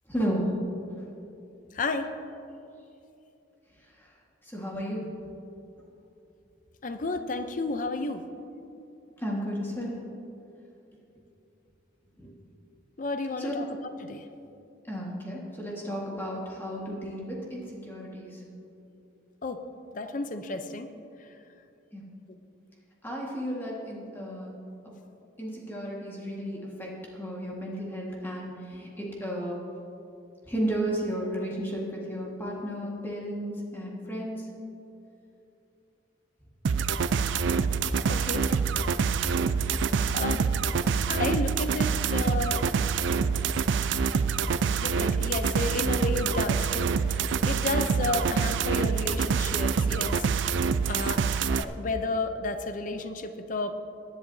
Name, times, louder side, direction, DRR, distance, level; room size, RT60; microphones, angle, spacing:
voice 1, 0.1-0.5 4.4-5.1 9.2-10.0 12.2-12.3 13.4-13.5 14.9-18.4 21.9-22.0 23.0-24.6 25.4-26.9 27.1-29.6 30.5-34.5, equal, 10° left, -4 dB, 1.6 m, -33 dB
voice 2, 1.7-2.1 6.8-8.2 13.0-13.7 14.0-14.3 19.4-19.6 19.9-20.9 38.1-38.5 40.1-40.5 41.1-42.6 44.8-47.2 47.4-50.3 50.9-53.8, left 2 dB, 40° left, 7 dB, 0.6 m, -32 dB
sound 1, 36.7-51.7, right 5 dB, 70° right, 0.4 m, -26 dB
19.0 x 10.5 x 2.7 m, 2.8 s
head